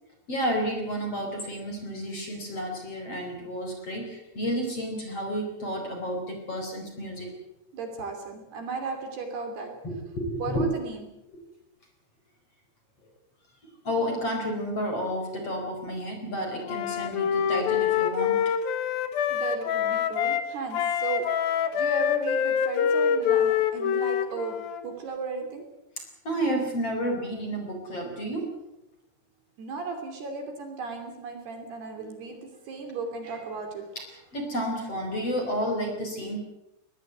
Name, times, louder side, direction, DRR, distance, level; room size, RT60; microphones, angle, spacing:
voice 1, 0.3-7.3 9.8-10.6 11.3-11.4 13.8-18.4 26.0-28.5 32.0-32.1 33.9-36.4, equal, 30° left, 3 dB, 4.8 m, -31 dB
voice 2, 7.7-9.7 10.4-11.0 19.3-25.7 29.6-33.9, right 4 dB, 55° right, 5 dB, 4.6 m, -35 dB
Wind instrument woodwind instrument, 16.7-20.5 20.7-24.8, left 8 dB, 65° left, 2.5 m, -25 dB
22.5 x 19.5 x 8.1 m, 0.87 s
omnidirectional pair, 6.0 m